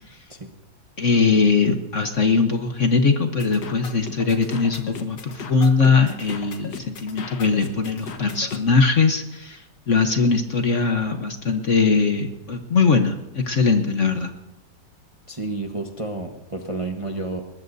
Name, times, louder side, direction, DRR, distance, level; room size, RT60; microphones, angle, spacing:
voice 1, 1.0-9.6 9.9-14.3, left 4 dB, 50° left, 6 dB, 1.2 m, -20 dB
sound 1, 3.4-8.6, left 5 dB, 65° left, 1.8 m, -37 dB
voice 2, 15.3-17.4, right 2 dB, 20° right, 3 dB, 1.0 m, -30 dB
22.0 x 19.5 x 2.7 m, 0.96 s
omnidirectional pair, 1.9 m